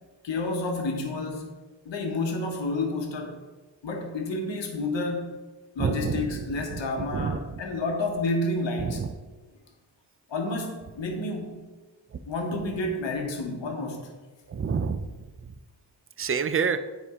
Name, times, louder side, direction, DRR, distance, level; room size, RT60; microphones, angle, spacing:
voice 1, 0.2-1.5 1.8-3.3 3.8-5.4 5.7-9.0 10.3-11.6 12.3-14.1, left 2 dB, 75° left, 2 dB, 1.2 m, -30 dB
voice 2, 5.8-6.4 7.1-7.4 8.8-9.1 14.5-15.1 16.2-16.8, right 6 dB, 30° right, 10 dB, 0.5 m, -27 dB
9.5 x 3.6 x 3.6 m, 1.2 s
cardioid pair, 45°, 44 cm